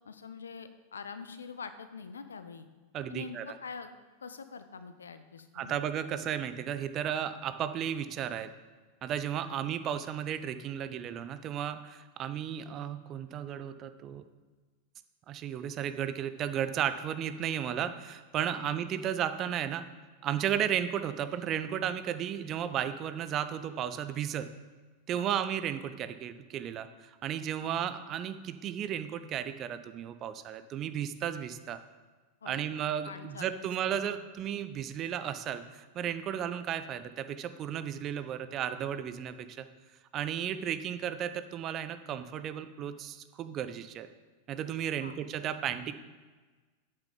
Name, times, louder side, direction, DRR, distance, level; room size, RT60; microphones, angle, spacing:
voice 1, 0.0-2.7 3.1-3.9 4.2-5.8 9.5-9.6 18.6-18.8 25.1-25.3 27.6-27.7 32.4-34.0 45.0-45.2, left 5 dB, 70° left, 10 dB, 0.6 m, -45 dB
voice 2, 2.9-3.4 5.5-8.5 9.0-14.2 15.3-19.8 20.2-24.5 25.1-31.8 32.5-39.7 40.1-44.1 44.5-45.9, right 9 dB, 30° right, 11 dB, 0.6 m, -34 dB
8.3 x 6.5 x 5.3 m, 1.3 s
figure-of-eight pair, 90°, 0 cm